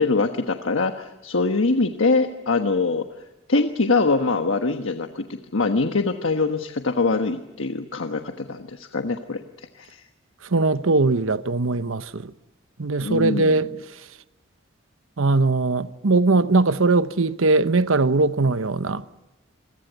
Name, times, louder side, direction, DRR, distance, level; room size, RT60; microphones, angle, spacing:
voice 1, 0.0-3.1 3.5-9.4 9.7-10.0 13.0-13.6, left 3 dB, 80° left, 1.3 m, -23 dB
voice 2, 10.4-12.3 12.8-13.7 15.2-19.0, right 3 dB, 90° right, 1.0 m, -20 dB
28.5 x 22.5 x 8.1 m
head